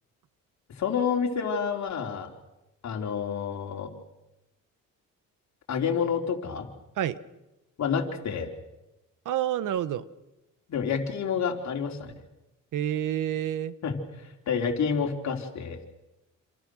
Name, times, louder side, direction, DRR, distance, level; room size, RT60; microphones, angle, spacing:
voice 1, 0.7-2.3 2.8-3.9 5.7-6.7 7.8-8.5 10.7-12.1 13.8-14.0 14.5-15.8, left 6 dB, 55° left, 3 dB, 3.8 m, -28 dB
voice 2, 9.2-10.0 12.7-13.7, right 11 dB, 65° right, 15 dB, 1.2 m, -28 dB
27.5 x 26.5 x 6.4 m, 0.97 s
cardioid pair, 100°, 33 cm